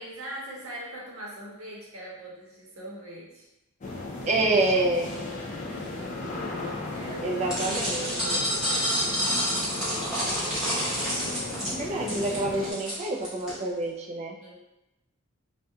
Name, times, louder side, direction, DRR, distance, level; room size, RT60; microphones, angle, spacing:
voice 1, 0.0-3.5 5.7-7.7 8.0-9.1 14.4-14.6, right 1 dB, 85° right, -4 dB, 0.8 m, -42 dB
sound 1, 3.8-12.7, left 2 dB, 40° left, 0.4 m, -36 dB
voice 2, 4.3-5.1 7.2-8.4 11.6-14.3, right 2 dB, 35° right, 0 dB, 0.3 m, -27 dB
sound 2, 7.5-13.5, equal, 5° right, 0.8 m, -29 dB
2.3 x 2.1 x 2.7 m, 0.93 s
head